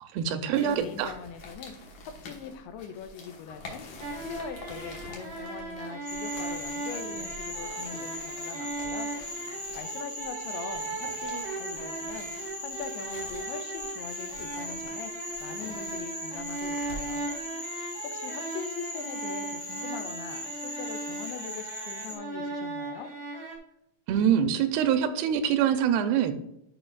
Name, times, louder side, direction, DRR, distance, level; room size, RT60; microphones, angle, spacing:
voice 1, 0.0-1.1 24.1-26.3, right 9 dB, 85° right, 9 dB, 2.6 m, -25 dB
sound 1, 0.5-17.4, left 2 dB, 60° left, 2.4 m, -48 dB
voice 2, 0.6-1.8 2.0-3.9 4.2-9.1 9.7-12.3 12.6-15.1 15.4-17.3 18.0-23.1, left 7 dB, 90° left, 8 dB, 2.7 m, -42 dB
sound 2, 4.0-23.6, right 3 dB, 55° right, 1.2 m, -38 dB
Cricket / Frog, 6.1-22.2, left 1 dB, 40° left, 2.3 m, -39 dB
12.0 x 5.1 x 2.4 m, 0.82 s
omnidirectional pair, 4.5 m